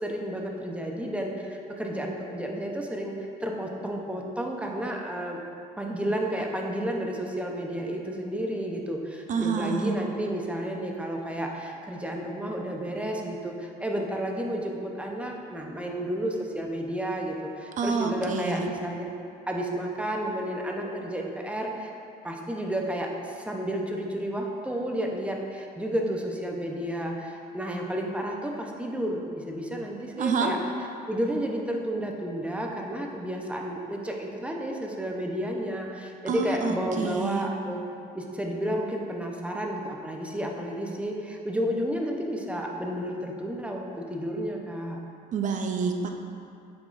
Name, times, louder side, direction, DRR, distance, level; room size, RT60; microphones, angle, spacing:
voice 1, 0.0-3.1 3.4-5.4 5.8-19.0 19.5-21.9 22.2-30.6 31.1-37.8 38.1-45.0, equal, 5° right, 0 dB, 0.7 m, -31 dB
voice 2, 9.3-9.9 17.8-18.7 30.2-30.5 36.3-37.5 45.3-46.1, right 5 dB, 50° right, 4 dB, 0.7 m, -28 dB
8.5 x 5.9 x 2.5 m, 2.5 s
cardioid pair, 110°, 17 cm